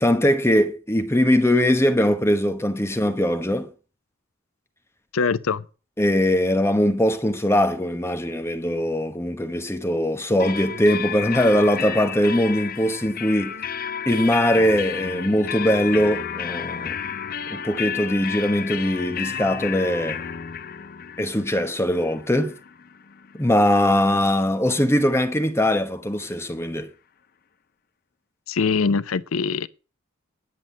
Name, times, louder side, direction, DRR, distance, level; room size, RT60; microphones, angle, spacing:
voice 1, 0.0-3.7 6.0-13.5 14.1-17.0 17.5-20.2 21.2-22.6 23.3-26.9, equal, 10° left, 1.0 m, -21 dB
voice 2, 5.1-5.6 28.5-29.7, left 5 dB, 85° left, 0.6 m, -23 dB
sound 1, 10.4-24.0, left 8 dB, 45° left, 0.6 m, -32 dB
10.5 x 7.7 x 7.5 m
head